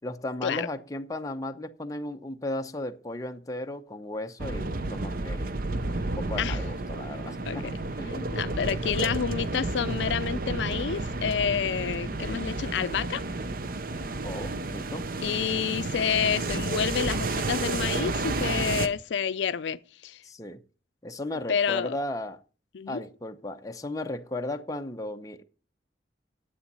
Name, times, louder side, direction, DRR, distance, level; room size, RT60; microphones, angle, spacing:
voice 1, 0.0-5.5 6.0-7.7 8.0-8.3 9.0-9.2 14.2-15.1 20.2-20.6 21.0-22.4 22.9-25.4, left 1 dB, 20° left, 0.7 m, -35 dB
automated carwash, 4.4-18.9, right 2 dB, 50° right, 0.7 m, -31 dB
voice 2, 8.3-13.2 15.2-20.2 21.5-21.9 22.7-23.0, left 7 dB, 80° left, 0.4 m, -29 dB
10.0 x 7.9 x 5.5 m
head